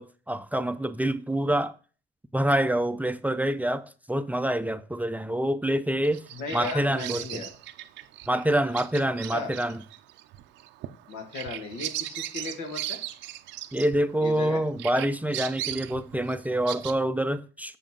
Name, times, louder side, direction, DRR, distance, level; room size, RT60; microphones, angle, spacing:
voice 1, 0.0-1.7 2.3-6.2 6.5-7.4 8.3-9.8 13.7-17.8, right 1 dB, 10° right, 0.5 m, -26 dB
Bird vocalization bird call bird song, 6.0-14.5 14.8-16.9, right 14 dB, 80° right, 0.6 m, -38 dB
voice 2, 6.3-7.5 9.3-9.5 11.1-13.0 14.2-14.6, left 3 dB, 90° left, 2.0 m, -36 dB
7.1 x 6.7 x 3.8 m
cardioid pair, 85°, 19 cm